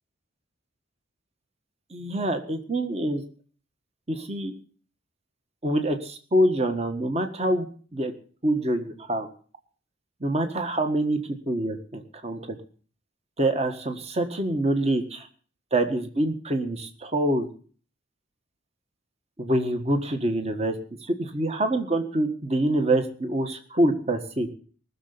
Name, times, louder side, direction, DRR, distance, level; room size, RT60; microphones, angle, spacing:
voice 1, 1.9-3.2 4.1-4.5 5.6-7.7 7.9-8.1 8.4-9.3 10.2-11.2 11.5-12.6 13.4-15.3 15.7-17.5 19.4-24.5, right 1 dB, 30° right, 6 dB, 1.5 m, -25 dB
19.5 x 6.9 x 8.3 m, 0.43 s
head